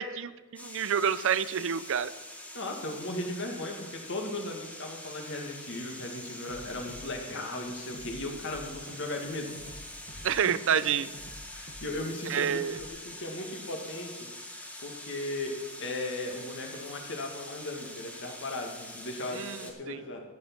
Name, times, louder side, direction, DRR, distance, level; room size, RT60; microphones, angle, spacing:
voice 1, 0.0-2.1 10.2-11.1 12.3-12.8 19.3-20.0, right 8 dB, 65° right, 15 dB, 0.5 m, -28 dB
sound 1, 0.6-19.7, left 1 dB, 5° left, 1.6 m, -45 dB
voice 2, 2.5-10.3 11.5-14.3 14.8-20.2, left 2 dB, 60° left, 2 dB, 2.1 m, -37 dB
sound 2, 6.5-12.9, right 1 dB, 45° right, 1.1 m, -50 dB
14.0 x 7.3 x 6.1 m, 1.2 s
head